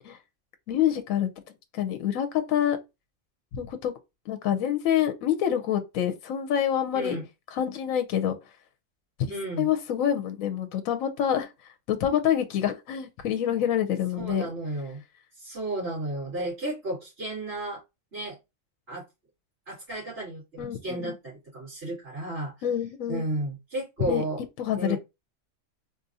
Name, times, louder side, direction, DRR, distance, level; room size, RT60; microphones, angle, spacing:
voice 1, 0.7-1.3 1.7-2.8 3.5-3.9 4.3-7.2 7.5-8.3 9.6-11.5 11.9-14.4 20.6-21.2 22.6-23.2 24.0-24.2 24.6-25.0, left 10 dB, 85° left, 1.0 m, -26 dB
voice 2, 6.9-7.2 9.3-9.7 14.2-15.0 15.3-17.8 18.1-18.4 18.9-19.0 19.7-22.6 23.1-24.4 24.8-25.0, right 2 dB, 50° right, 2.6 m, -33 dB
4.3 x 2.4 x 2.7 m
omnidirectional pair, 1.4 m